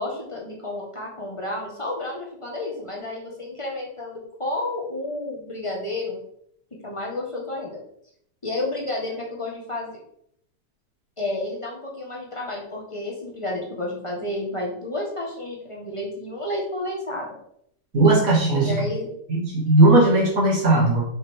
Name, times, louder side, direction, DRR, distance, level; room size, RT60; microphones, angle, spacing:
voice 1, 0.0-6.2 6.7-7.8 8.4-10.0 11.2-17.3 18.6-19.1, left 2 dB, 20° left, -2 dB, 1.5 m, -31 dB
voice 2, 17.9-18.8 19.3-21.0, right 2 dB, 55° right, -4 dB, 2.7 m, -17 dB
6.5 x 5.3 x 3.7 m, 0.70 s
omnidirectional pair, 1.8 m